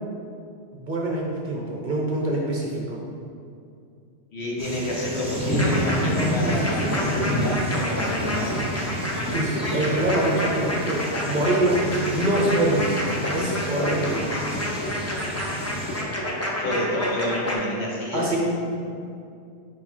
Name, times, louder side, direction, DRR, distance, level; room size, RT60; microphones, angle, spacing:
voice 1, 0.7-3.0 6.4-6.9 9.3-11.8 12.1-13.0 13.3-14.3 18.1-18.4, right 1 dB, 45° right, -2 dB, 0.8 m, -25 dB
voice 2, 4.3-8.5 16.2-16.3 16.6-18.4, left 1 dB, 65° left, -3 dB, 1.3 m, -29 dB
sound 1, 4.6-16.0, equal, 5° right, 0.7 m, -30 dB
sound 2, 5.6-17.5, equal, 20° left, 0.4 m, -29 dB
4.7 x 4.7 x 4.3 m, 2.5 s
omnidirectional pair, 1.2 m